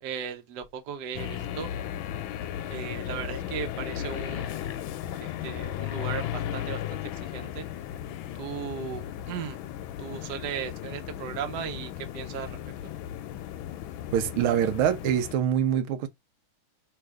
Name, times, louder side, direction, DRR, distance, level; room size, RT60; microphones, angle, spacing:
voice 1, 0.0-1.7 2.6-4.6 5.2-7.0 7.3-7.7 8.4-9.6 10.0-12.6 12.8-12.9, right 8 dB, 60° right, 1.2 m, -36 dB
sound 1, 1.1-15.3, left 11 dB, 75° left, 1.3 m, -35 dB
voice 2, 14.1-16.1, right 9 dB, 80° right, 1.5 m, -24 dB
3.4 x 3.0 x 4.8 m
omnidirectional pair, 2.3 m